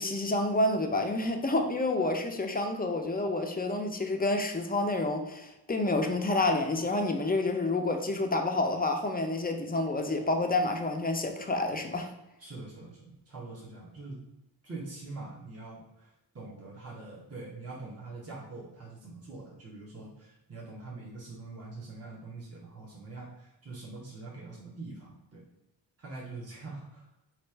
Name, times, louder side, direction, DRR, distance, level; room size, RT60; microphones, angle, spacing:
voice 1, 0.0-12.1, left 2 dB, 20° left, 4 dB, 0.5 m, -29 dB
voice 2, 12.4-14.2 14.6-25.4 26.0-27.1, right 3 dB, 35° right, -5 dB, 1.1 m, -44 dB
3.2 x 2.5 x 4.4 m, 0.91 s
cardioid pair, 80°, 44 cm